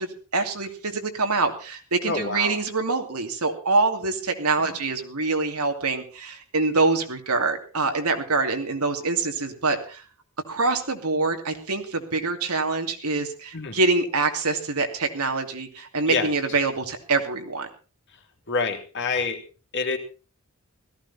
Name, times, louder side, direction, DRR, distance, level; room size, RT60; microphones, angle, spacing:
voice 1, 0.0-10.0 10.5-17.7, right 3 dB, 80° right, 5 dB, 2.7 m, -25 dB
voice 2, 2.1-2.6 4.6-4.8 13.5-13.8 16.1-16.3 18.5-19.4 19.7-20.0, left 4 dB, 55° left, 4 dB, 2.7 m, -27 dB
17.0 x 15.0 x 4.2 m, 0.35 s
head